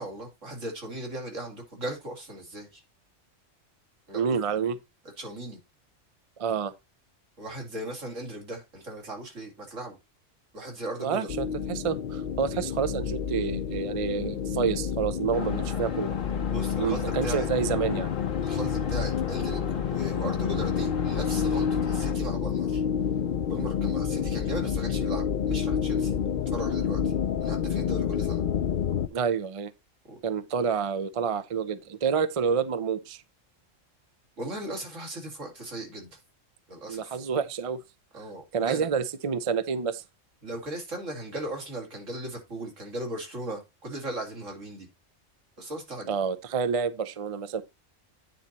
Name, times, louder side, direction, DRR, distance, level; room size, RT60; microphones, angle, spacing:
voice 1, 0.0-2.8 4.1-4.4 5.2-5.6 7.4-10.0 10.5-11.3 16.5-17.5 18.4-19.6 19.9-22.8 23.5-26.2 26.5-27.1 27.4-28.4 30.1-30.2 34.4-36.2 36.7-37.2 38.1-38.9 40.4-44.9 45.6-46.2, right 1 dB, 75° right, 3.1 m, -37 dB
voice 2, 4.1-4.8 6.4-6.7 11.0-16.1 16.8-18.1 29.1-29.7 30.2-33.2 36.9-37.8 38.5-40.0 46.1-47.6, right 6 dB, 40° right, 0.5 m, -28 dB
sound 1, 11.3-29.1, left 7 dB, 55° left, 0.7 m, -29 dB
sound 2, 15.3-22.2, left 5 dB, 85° left, 1.5 m, -42 dB
9.5 x 4.1 x 4.2 m
omnidirectional pair, 1.3 m